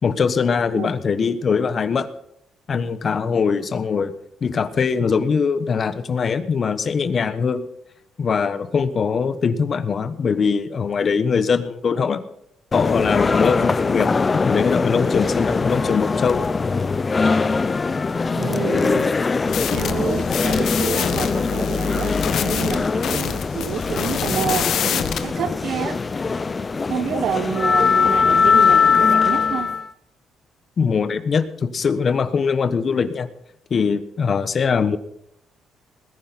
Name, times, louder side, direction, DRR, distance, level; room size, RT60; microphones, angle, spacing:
voice 1, 0.0-2.1 2.7-4.1 4.4-7.7 8.2-12.2 12.7-16.4 30.8-33.3 33.7-35.0, left 5 dB, 45° left, 13 dB, 1.1 m, -21 dB
sound 1, 12.7-29.9, left 5 dB, 30° left, 0.7 m, -21 dB
voice 2, 18.3-19.1 19.7-26.0 26.9-29.7, right 8 dB, 65° right, 11 dB, 1.3 m, -28 dB
sound 2, 19.5-25.2, left 8 dB, 70° left, 1.3 m, -26 dB
20.0 x 10.0 x 4.2 m, 0.75 s
cardioid pair, 90°, 0 cm